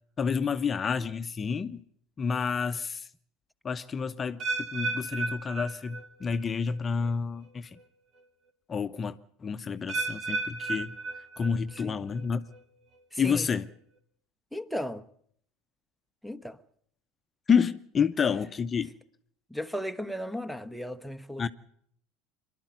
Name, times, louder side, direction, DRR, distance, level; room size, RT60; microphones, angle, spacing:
voice 1, 0.2-1.8 2.2-3.1 3.6-7.7 8.7-9.2 9.4-10.9 11.4-12.4 13.2-13.7 17.5-18.9 21.4-21.5, left 6 dB, 30° left, 0.9 m, -29 dB
sound 1, 4.4-6.4 6.7-7.1 7.8-7.9 9.9-11.8 12.2-12.6 13.2-13.3, right 3 dB, 50° right, 2.9 m, -34 dB
voice 2, 13.1-13.5 14.5-15.0 16.2-16.6 19.5-21.5, equal, ahead, 1.0 m, -35 dB
23.5 x 12.0 x 9.4 m
hypercardioid pair, 80°, 0 cm